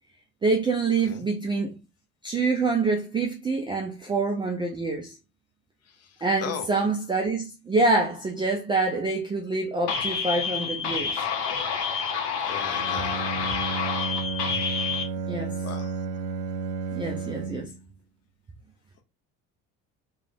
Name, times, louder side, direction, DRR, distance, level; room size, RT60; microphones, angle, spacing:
voice 1, 0.4-1.7 2.2-5.2 6.2-11.3 15.3-15.6 17.0-17.7, right 3 dB, 10° right, 0.3 m, -26 dB
sound 1, 9.9-15.0, left 6 dB, 70° left, 0.9 m, -28 dB
voice 2, 12.4-13.2 15.6-15.9, left 7 dB, 30° left, 0.7 m, -36 dB
Bowed string instrument, 12.7-17.8, right 5 dB, 85° right, 0.6 m, -32 dB
3.1 x 2.3 x 3.6 m
figure-of-eight pair, 55°, 49 cm